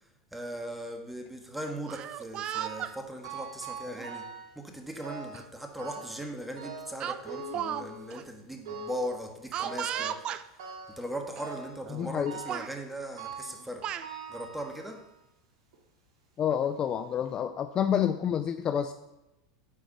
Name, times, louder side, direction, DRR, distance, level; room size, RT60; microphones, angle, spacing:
voice 1, 0.3-4.3 4.5-10.2 10.9-14.0 14.3-15.0, right 1 dB, 5° right, 4 dB, 1.5 m, -39 dB
Speech, 1.8-3.0 3.9-4.1 5.3-5.4 5.8-6.0 7.0-8.2 9.5-10.4 11.4-11.5 11.8-12.2 12.5-12.7 13.5-14.1, right 10 dB, 40° right, 0.4 m, -35 dB
sound 1, 2.5-3.0 3.2-4.5 5.0-5.5 5.8-6.3 6.6-8.2 8.7-9.1 9.6-10.3 10.6-11.0 11.4-11.8 12.3-12.7 13.2-13.6 14.0-15.1 15.7-15.8 16.6-16.7 17.2-17.3, right 4 dB, 70° right, 2.2 m, -42 dB
voice 2, 11.9-12.3 16.4-18.9, left 9 dB, 35° left, 9 dB, 0.5 m, -28 dB
8.7 x 4.8 x 6.5 m, 0.91 s
hypercardioid pair, 100°, 2 cm